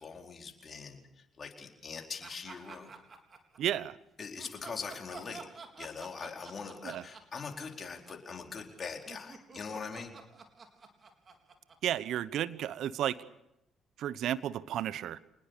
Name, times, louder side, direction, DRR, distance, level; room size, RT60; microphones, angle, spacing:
voice 1, 0.0-2.9 4.2-5.5 5.8-10.2, left 5 dB, 45° left, 2 dB, 4.5 m, -42 dB
sound 1, 2.2-3.8 4.4-12.6, right 4 dB, 45° right, 4.1 m, -50 dB
voice 2, 3.6-4.0 6.8-7.0 11.8-13.2 14.0-15.2, right 11 dB, 65° right, 17 dB, 1.0 m, -32 dB
26.5 x 20.0 x 6.8 m, 0.83 s
hypercardioid pair, 55°, 0 cm